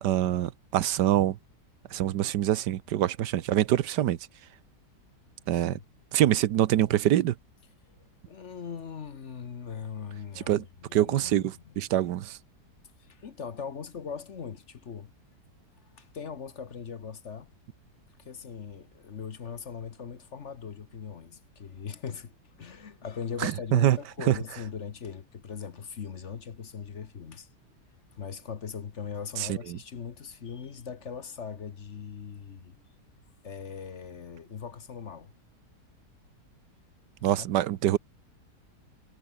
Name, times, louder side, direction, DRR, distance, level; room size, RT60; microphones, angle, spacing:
voice 1, 0.0-1.4 1.9-4.2 5.5-5.8 6.1-7.3 10.5-10.6 10.9-12.4 23.4-24.0 24.3-24.4 29.4-29.8 37.2-38.0, right 12 dB, 80° right, 1.4 m, -25 dB
voice 2, 5.5-5.8 8.3-11.7 13.0-15.1 16.0-17.5 18.2-27.5 28.2-32.8 33.4-35.3 37.3-37.5 37.8-38.0, left 6 dB, 45° left, 1.3 m, -40 dB
omnidirectional pair, 1.8 m